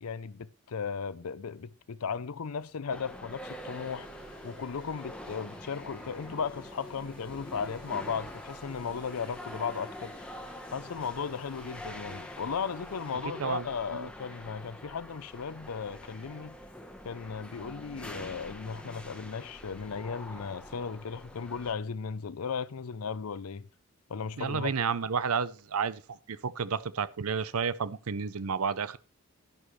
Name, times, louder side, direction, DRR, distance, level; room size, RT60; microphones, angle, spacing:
voice 1, 0.0-4.1 4.4-10.3 10.7-16.6 17.0-23.7 24.1-24.7, left 6 dB, 85° left, 0.6 m, -36 dB
sound 1, 2.9-21.7, left 1 dB, 5° left, 1.0 m, -45 dB
sound 2, 3.4-13.2, left 1 dB, 25° left, 5.0 m, -56 dB
voice 2, 24.4-29.0, right 6 dB, 80° right, 0.6 m, -31 dB
11.5 x 10.5 x 3.2 m
head